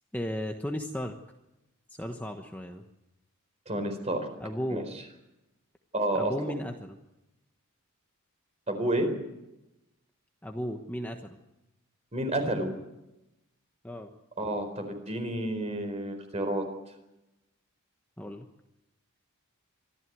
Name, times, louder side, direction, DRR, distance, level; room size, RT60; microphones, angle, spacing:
voice 1, 0.1-1.2 1.9-2.8 4.4-4.9 6.1-7.0 10.4-11.4 13.8-14.1 18.2-18.5, equal, 5° left, 3 dB, 1.1 m, -35 dB
voice 2, 3.7-4.3 4.7-4.8 5.9-6.5 8.7-9.1 12.1-12.7 14.4-16.6, right 1 dB, 30° right, 6 dB, 4.4 m, -30 dB
25.0 x 14.5 x 9.4 m, 0.95 s
head